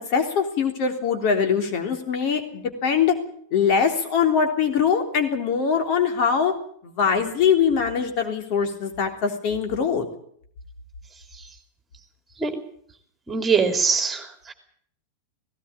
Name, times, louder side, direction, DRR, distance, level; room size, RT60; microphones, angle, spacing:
voice 1, 0.1-3.1 3.5-6.5 6.8-10.1, left 6 dB, 45° left, 5 dB, 3.4 m, -22 dB
voice 2, 13.3-14.5, right 5 dB, 15° right, 6 dB, 3.2 m, -22 dB
18.0 x 18.0 x 8.7 m, 0.62 s
figure-of-eight pair, 90°, 0 cm